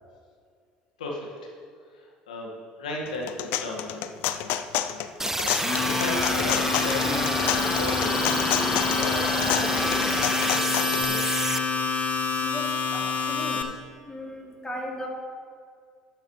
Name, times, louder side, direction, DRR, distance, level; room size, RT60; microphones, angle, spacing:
voice 1, 1.0-1.5 1.9-4.1 4.8-5.6 5.8-10.2 10.4-11.6, left 2 dB, 85° left, -1 dB, 1.9 m, -35 dB
sound 1, 3.1-11.0, left 12 dB, 65° left, 0.5 m, -29 dB
Spacecraft Motion, 5.2-11.6, right 2 dB, 10° right, 0.4 m, -28 dB
Domestic sounds home sounds, 5.5-13.6, left 6 dB, 40° left, 1.2 m, -28 dB
voice 2, 12.4-13.8 14.1-15.1, left 1 dB, 20° left, -2 dB, 2.9 m, -37 dB
12.5 x 8.8 x 3.3 m, 2.1 s
hypercardioid pair, 65°, 4 cm